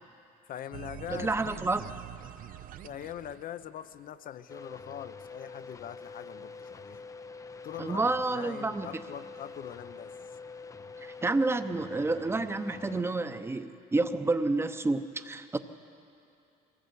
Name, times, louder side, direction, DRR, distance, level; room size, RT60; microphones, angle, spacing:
voice 1, 0.5-1.6 2.8-7.0 7.6-10.1, left 10 dB, 55° left, 13 dB, 0.8 m, -42 dB
sound 1, 0.7-4.0, right 12 dB, 55° right, 0.5 m, -44 dB
voice 2, 1.1-1.8 7.8-8.9 11.0-15.6, right 3 dB, 15° right, 9 dB, 0.9 m, -29 dB
sound 2, 4.5-13.0, left 4 dB, 20° left, 0.6 m, -46 dB
22.5 x 17.0 x 8.4 m, 2.7 s
cardioid pair, 110°, 17 cm